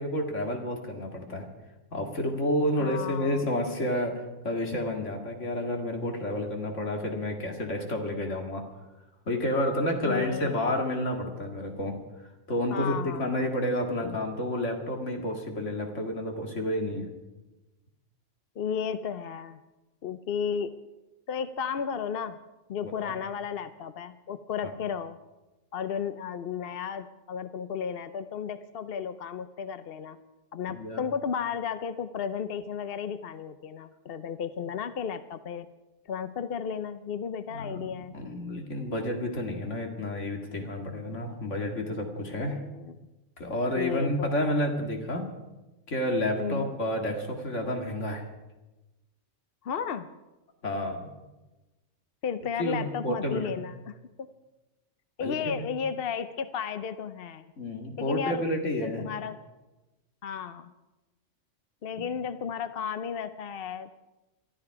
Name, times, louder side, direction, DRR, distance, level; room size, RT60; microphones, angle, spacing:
voice 1, 0.0-1.4 1.9-8.6 9.3-12.0 12.5-17.1 23.0-23.1 30.7-31.0 37.5-42.6 43.4-45.3 45.9-48.3 50.6-51.1 52.6-53.5 55.2-55.7 57.6-59.1, left 1 dB, 70° left, 2 dB, 2.5 m, -30 dB
voice 2, 2.8-3.4 10.0-10.5 12.7-13.5 18.6-19.6 20.0-20.7 21.3-22.4 22.7-25.2 25.7-30.2 30.5-35.7 36.1-38.2 42.2-43.0 43.7-44.3 46.4-46.7 49.6-50.1 52.2-54.3 55.2-57.5 58.0-58.5 58.8-59.4 60.2-60.7 61.8-64.0, left 7 dB, 55° left, 12 dB, 0.8 m, -33 dB
23.0 x 13.0 x 4.8 m, 1.1 s
omnidirectional pair, 1.3 m